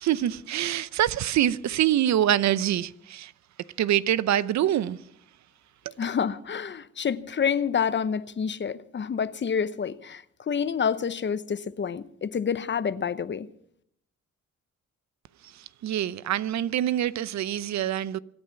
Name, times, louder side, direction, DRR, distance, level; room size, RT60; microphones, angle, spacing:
voice 1, 0.0-3.3 3.8-5.0 15.8-18.2, right 11 dB, 65° right, 0.7 m, -25 dB
voice 2, 6.0-13.5, left 7 dB, 40° left, 0.9 m, -28 dB
25.5 x 9.7 x 5.8 m
cardioid pair, 90°, 30 cm